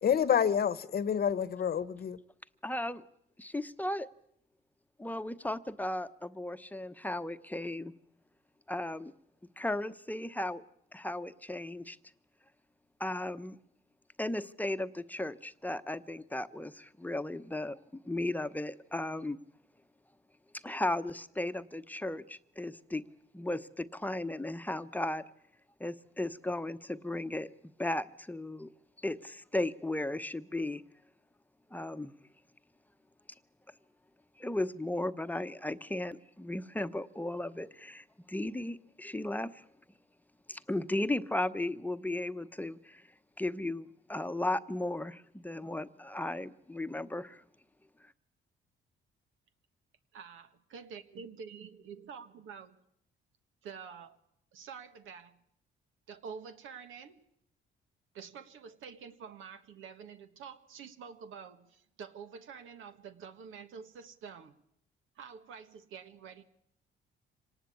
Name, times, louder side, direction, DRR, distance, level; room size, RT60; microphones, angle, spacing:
voice 1, 0.0-2.2, left 8 dB, 50° left, 1.0 m, -28 dB
voice 2, 2.6-3.0 3.4-4.1 5.0-7.9 8.7-9.1 9.6-10.6 10.9-12.0 13.0-13.6 14.2-17.8 18.0-19.4 20.6-23.0 23.3-25.2 25.8-27.5 27.8-28.7 29.0-30.8 31.7-32.1 34.4-39.6 40.5-43.0 43.4-47.4, left 1 dB, 10° left, 0.9 m, -35 dB
voice 3, 50.1-52.8 53.6-54.2 54.5-55.4 56.1-57.2 58.1-64.5 65.1-66.4, right 6 dB, 80° right, 1.5 m, -48 dB
25.5 x 18.5 x 8.4 m
cardioid pair, 90°, 20 cm